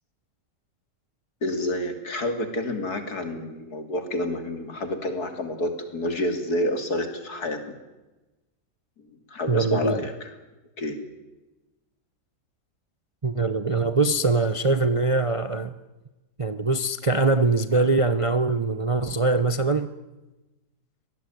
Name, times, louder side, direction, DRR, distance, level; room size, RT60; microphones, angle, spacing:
voice 1, 1.4-7.6 9.3-10.3 10.8-11.0, left 1 dB, 65° left, 7 dB, 3.3 m, -29 dB
voice 2, 9.5-10.0 13.2-15.7 16.4-19.9, right 3 dB, 30° right, 11 dB, 0.7 m, -22 dB
24.5 x 19.0 x 9.3 m, 1.1 s
omnidirectional pair, 1.8 m